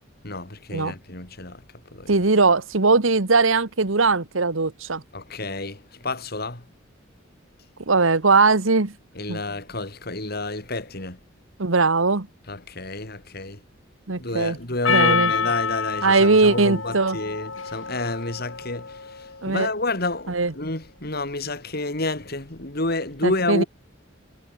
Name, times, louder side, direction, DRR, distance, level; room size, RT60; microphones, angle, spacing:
voice 1, 0.2-1.6 1.9-2.2 5.1-6.6 9.1-11.2 12.5-13.6 14.2-23.7, left 2 dB, 50° left, 4.2 m, -29 dB
voice 2, 2.1-5.0 7.9-8.9 9.3-9.4 11.6-12.3 14.1-14.6 14.9-15.3 16.0-17.2 19.4-19.7 20.3-20.5 23.2-23.6, right 3 dB, 80° right, 1.4 m, -20 dB
Percussion, 14.8-19.4, left 6 dB, 70° left, 1.8 m, -27 dB
head